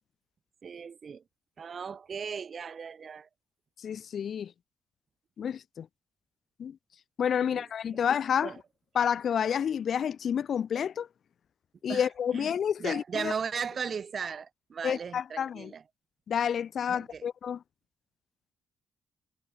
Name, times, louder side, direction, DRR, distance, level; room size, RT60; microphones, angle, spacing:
voice 1, 0.6-1.2 1.6-3.3 7.4-7.7 7.9-8.0 8.4-8.6 11.9-15.8 16.9-17.3, right 6 dB, 45° right, 1.4 m, -37 dB
voice 2, 3.8-4.5 5.4-5.9 6.6-6.8 7.2-8.5 9.0-11.1 11.8-13.3 14.8-15.7 16.3-17.6, left 8 dB, 55° left, 0.3 m, -29 dB
cardioid pair, 90°, 0 cm